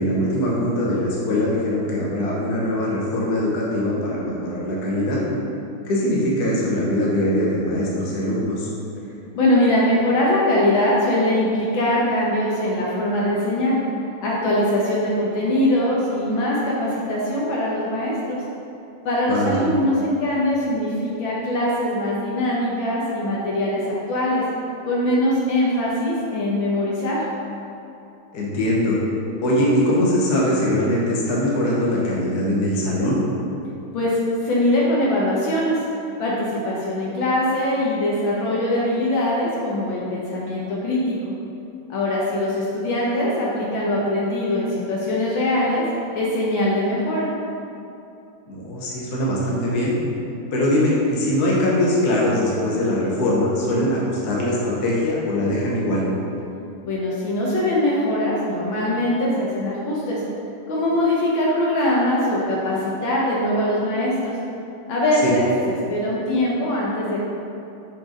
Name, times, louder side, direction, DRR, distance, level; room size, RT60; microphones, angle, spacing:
voice 1, 0.0-5.2 5.8-8.7 19.3-19.6 28.3-29.0 29.4-33.2 48.5-49.9 50.5-56.0 65.2-65.3, left 1 dB, 50° left, -5 dB, 1.7 m, -22 dB
voice 2, 9.3-13.8 14.2-18.4 19.1-24.4 24.9-27.2 33.9-34.2 34.4-35.8 36.2-41.3 41.9-45.8 46.2-47.3 56.8-60.2 60.7-64.4 64.9-67.2, left 1 dB, 70° left, -5 dB, 1.7 m, -22 dB
6.3 x 4.6 x 5.1 m, 2.7 s
omnidirectional pair, 2.3 m